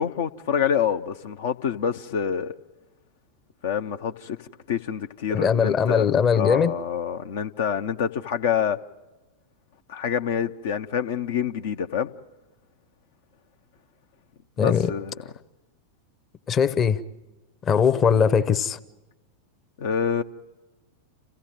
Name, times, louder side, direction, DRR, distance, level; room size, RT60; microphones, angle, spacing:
voice 1, 0.0-2.5 3.6-8.8 9.9-12.1 14.6-15.1 19.8-20.2, left 8 dB, 55° left, 0.7 m, -27 dB
voice 2, 5.3-6.7 14.6-14.9 16.5-17.0 17.7-18.8, left 6 dB, 25° left, 0.9 m, -20 dB
28.5 x 16.0 x 9.0 m
figure-of-eight pair, 90°, 0 cm